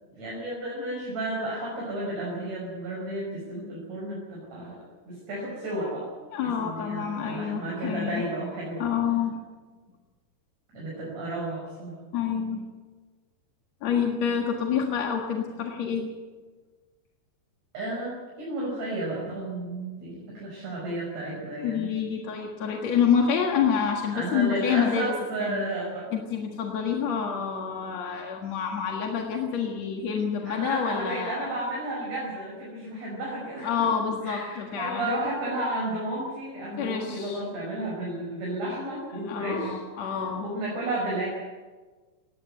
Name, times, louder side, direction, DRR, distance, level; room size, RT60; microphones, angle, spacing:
voice 1, 0.2-4.8 5.0-6.1 6.4-8.8 10.7-12.0 17.7-21.9 24.1-26.1 30.4-33.9 34.2-41.3, right 1 dB, 40° right, -4 dB, 6.4 m, -32 dB
voice 2, 6.3-8.2 8.8-9.4 12.1-12.6 13.8-16.1 21.6-25.1 25.4-25.6 26.1-31.5 33.6-35.2 36.8-37.4 39.3-40.5, left 7 dB, 55° left, 1 dB, 2.2 m, -27 dB
19.0 x 16.5 x 9.1 m, 1.4 s
omnidirectional pair, 5.1 m